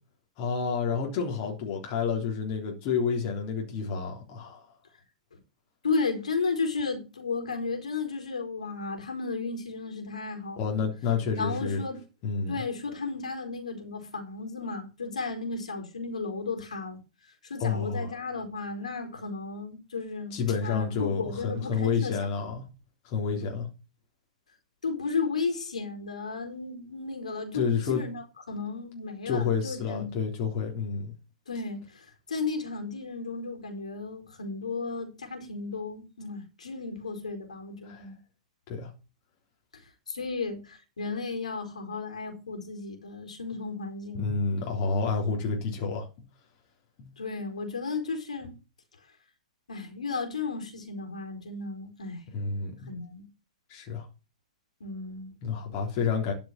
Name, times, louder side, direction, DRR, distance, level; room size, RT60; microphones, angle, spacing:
voice 1, 0.4-4.7 10.6-11.8 12.2-12.5 17.6-18.2 20.3-22.6 23.0-23.7 27.5-28.0 29.3-31.1 37.8-38.1 38.7-38.9 44.1-46.1 47.0-47.1 52.3-52.9 53.7-54.1 55.4-56.3, left 5 dB, 40° left, 3.6 m, -29 dB
voice 2, 5.8-10.7 11.4-12.0 12.5-17.0 17.5-22.2 24.8-30.1 31.5-38.2 40.1-44.3 47.2-48.5 49.7-52.2 52.9-53.3 54.8-55.3, left 4 dB, 70° left, 4.4 m, -34 dB
13.0 x 6.1 x 5.9 m
figure-of-eight pair, 105°, 4 cm